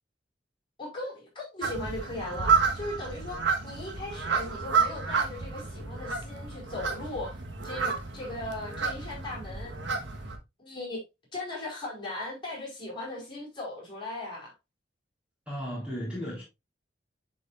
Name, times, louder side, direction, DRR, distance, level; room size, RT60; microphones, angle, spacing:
voice 1, 0.8-7.4 7.6-9.7 10.6-11.0 11.3-14.5, left 2 dB, 25° left, 5.1 m, -38 dB
sound 1, 1.6-10.4, right 5 dB, 75° right, 1.4 m, -30 dB
voice 2, 15.5-16.4, equal, 5° right, 3.6 m, -35 dB
10.5 x 5.1 x 2.5 m
head